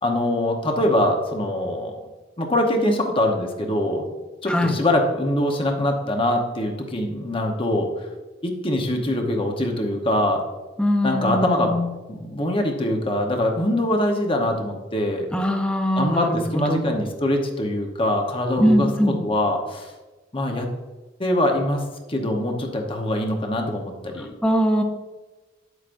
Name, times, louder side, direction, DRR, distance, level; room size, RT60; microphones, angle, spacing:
voice 1, 0.0-1.9 2.4-4.0 4.4-7.9 8.4-10.4 11.0-11.7 12.1-15.3 15.9-18.9 19.2-19.9 20.3-20.7 21.2-21.8 22.1-24.3, left 1 dB, 30° left, 3 dB, 1.0 m, -23 dB
voice 2, 10.8-11.9 15.3-17.0 18.6-19.2 24.4-24.8, equal, 5° left, 4 dB, 0.7 m, -21 dB
8.8 x 8.1 x 2.6 m, 1.2 s
head